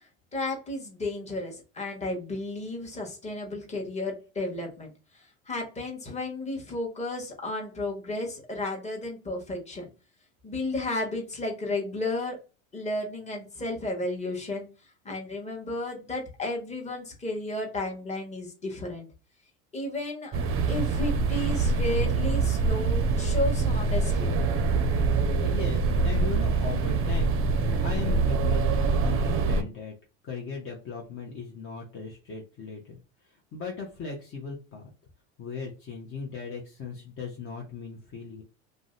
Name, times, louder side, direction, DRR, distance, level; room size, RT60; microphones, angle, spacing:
voice 1, 0.3-4.9 5.5-9.9 10.4-12.4 12.7-14.7 15.0-19.1 19.7-20.4 20.7-24.3, left 2 dB, 15° left, 0 dB, 1.2 m, -33 dB
sound 1, 20.3-29.6, right 4 dB, 35° right, 0.5 m, -25 dB
voice 2, 25.4-27.3 27.8-29.9 30.2-33.0 33.2-34.9 35.4-38.4, left 5 dB, 35° left, -1 dB, 0.8 m, -38 dB
2.5 x 2.1 x 3.8 m, 0.33 s
hypercardioid pair, 95°, 39 cm